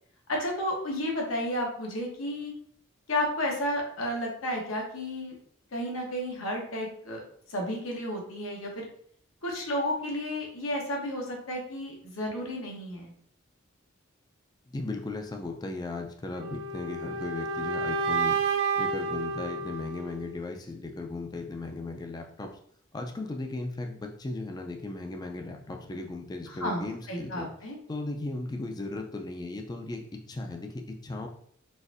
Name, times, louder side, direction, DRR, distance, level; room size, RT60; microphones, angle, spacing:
voice 1, 0.3-2.5 3.1-5.3 5.7-7.2 7.5-8.9 9.4-13.1 26.6-27.8, left 1 dB, 80° left, 0 dB, 1.0 m, -32 dB
voice 2, 14.7-18.4 18.8-22.5 22.9-27.5 27.9-31.3, left 2 dB, 20° left, 3 dB, 0.3 m, -36 dB
sound 1, 16.4-20.4, right 4 dB, 70° right, 0.4 m, -30 dB
4.0 x 2.5 x 2.5 m, 0.63 s
head